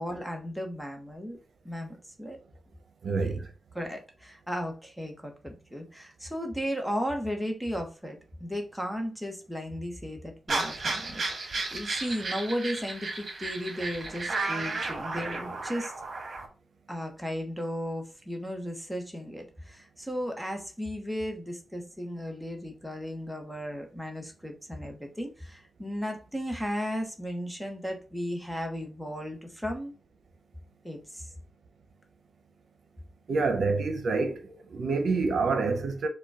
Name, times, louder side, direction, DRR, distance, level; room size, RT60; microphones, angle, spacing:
voice 1, 0.0-1.4 1.6-2.4 3.0-3.4 3.7-15.9 16.9-29.9 30.8-31.3, equal, ahead, 0.9 m, -35 dB
voice 2, 3.0-3.4 33.3-34.4 34.7-36.1, right 4 dB, 75° right, 0.7 m, -27 dB
sound 1, 10.5-16.5, right 3 dB, 50° right, 1.4 m, -33 dB
4.9 x 2.3 x 4.7 m
wide cardioid pair, 125°, 0 cm